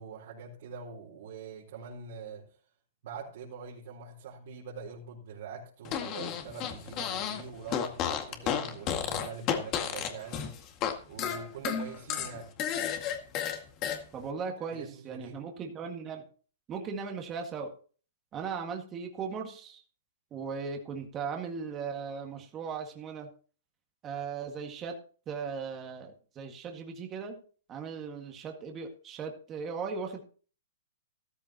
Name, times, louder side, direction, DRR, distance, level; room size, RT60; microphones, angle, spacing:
voice 1, 0.0-2.4 3.0-10.5 11.1-12.5 14.7-15.4, right 5 dB, 60° right, -4 dB, 4.1 m, -43 dB
Fart, 5.8-7.4 7.7-10.9 11.2-14.0, left 9 dB, 30° left, 2.0 m, -32 dB
voice 2, 14.1-16.2 16.7-17.7 18.3-19.8 20.3-23.3 24.0-25.0 25.3-27.4 27.7-30.2, right 5 dB, 20° right, 2 dB, 1.9 m, -38 dB
14.0 x 13.5 x 3.0 m, 0.41 s
hypercardioid pair, 150°, 0 cm